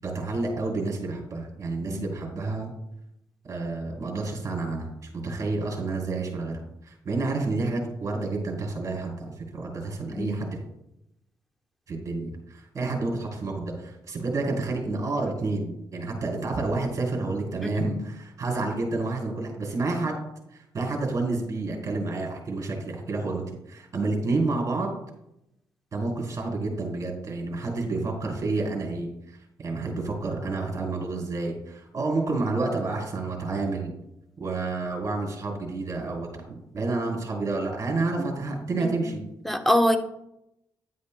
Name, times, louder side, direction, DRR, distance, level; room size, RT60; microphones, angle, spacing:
voice 1, 0.0-2.7 3.4-10.6 11.9-20.2 20.5-24.9 25.9-29.1 29.6-33.9 34.4-39.2, right 3 dB, 45° right, 1 dB, 3.6 m, -29 dB
voice 2, 17.6-18.0 38.2-38.3 38.8-39.1 39.4-40.0, left 1 dB, ahead, 5 dB, 1.0 m, -25 dB
10.5 x 9.4 x 2.3 m, 0.84 s
cardioid pair, 85°, 8 cm